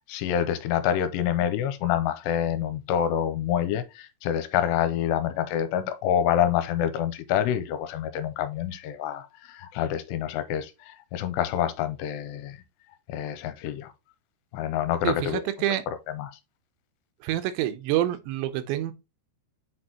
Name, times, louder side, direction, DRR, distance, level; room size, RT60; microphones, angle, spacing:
voice 1, 0.1-12.6 13.1-13.9 14.5-15.4 16.2-16.3, left 10 dB, 85° left, 2.7 m, -27 dB
voice 2, 15.0-15.8 17.2-18.9, right 13 dB, 80° right, 2.9 m, -27 dB
7.8 x 4.2 x 2.9 m
omnidirectional pair, 5.0 m